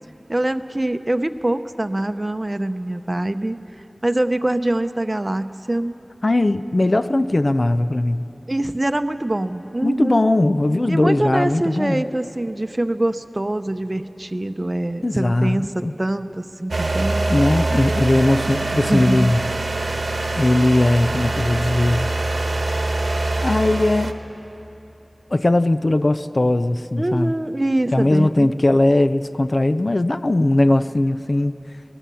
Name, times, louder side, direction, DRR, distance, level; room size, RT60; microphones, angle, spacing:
voice 1, 0.3-3.6 4.0-6.0 8.5-10.3 10.9-17.3 18.5-19.3 27.0-28.5, right 1 dB, 35° right, 10 dB, 0.7 m, -24 dB
voice 2, 6.2-8.2 9.8-12.0 15.0-15.9 17.3-19.4 20.4-22.1 23.4-24.1 25.3-27.3 27.9-31.6, left 1 dB, 55° left, 11 dB, 0.5 m, -19 dB
sound 1, 16.7-24.1, right 2 dB, 80° right, 1.0 m, -24 dB
20.5 x 19.0 x 6.9 m, 3.0 s
wide cardioid pair, 45°, 0 cm